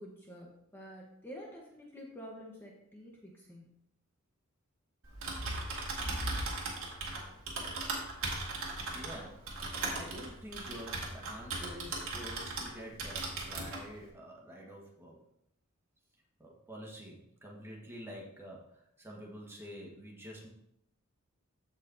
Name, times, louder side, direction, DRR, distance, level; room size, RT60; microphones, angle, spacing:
voice 1, 0.0-3.7, equal, 10° left, -3 dB, 1.1 m, -49 dB
Typing, 5.0-12.7 13.0-13.8, right 2 dB, 70° right, 2.1 m, -37 dB
voice 2, 8.9-9.5 9.8-15.2 16.4-20.5, equal, 10° right, -3 dB, 1.5 m, -48 dB
14.5 x 5.0 x 2.8 m, 0.78 s
head